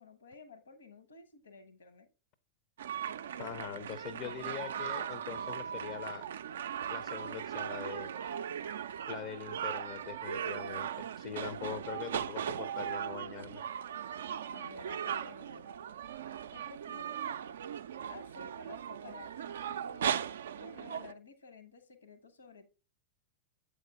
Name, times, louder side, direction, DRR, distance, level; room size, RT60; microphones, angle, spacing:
voice 1, 0.0-2.1 14.5-15.7 16.5-17.2 18.1-22.7, left 4 dB, 70° left, 10 dB, 1.0 m, -53 dB
sound 1, 2.8-21.1, right 8 dB, 65° right, 0.3 m, -38 dB
voice 2, 3.4-6.2 6.9-8.1 9.1-13.6, left 10 dB, 45° left, 14 dB, 0.5 m, -43 dB
7.7 x 4.7 x 3.5 m, 0.31 s
figure-of-eight pair, 90°, 0 cm